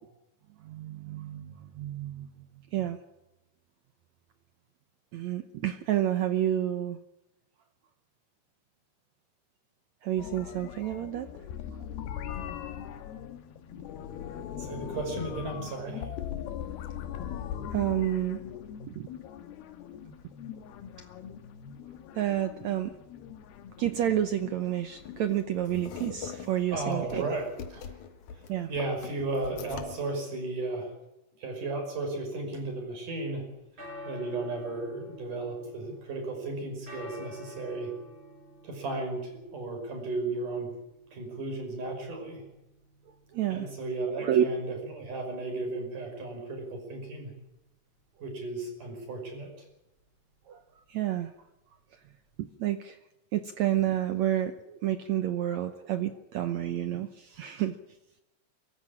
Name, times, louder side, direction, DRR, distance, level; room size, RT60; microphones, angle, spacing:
voice 1, 0.6-2.3 2.7-3.0 5.1-7.0 10.0-11.3 17.7-18.4 19.0-19.1 22.1-22.9 23.8-27.3 28.5-28.7 43.3-43.7 44.2-44.4 50.5-50.6 50.9-51.3 52.4-53.0 53.3-57.7, right 11 dB, 80° right, 9 dB, 1.6 m, -29 dB
sound 1, 10.2-26.6, left 9 dB, 80° left, 3.3 m, -41 dB
voice 2, 14.6-16.1 26.7-28.0 28.3-28.4 28.7-30.9 31.4-33.5 34.0-37.9 38.6-40.7 41.1-42.4 43.5-47.3 48.2-49.5, right 2 dB, 55° right, 3 dB, 7.1 m, -34 dB
sound 2, 24.9-30.1, left 7 dB, 60° left, 2.7 m, -43 dB
sound 3, 33.5-52.5, left 1 dB, 30° right, 7.2 m, -51 dB
23.5 x 14.0 x 9.8 m, 0.92 s
omnidirectional pair, 4.5 m